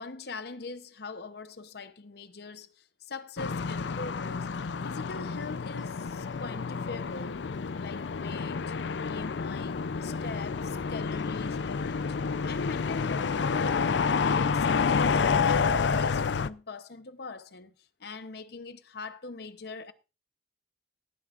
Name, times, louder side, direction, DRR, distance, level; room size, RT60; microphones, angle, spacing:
voice 1, 0.0-4.5 4.8-7.4 7.8-12.2 12.4-17.7 18.0-19.9, left 4 dB, 65° left, 0.9 m, -42 dB
sound 1, 3.4-16.5, left 5 dB, 85° left, 0.5 m, -29 dB
19.0 x 9.5 x 2.5 m
head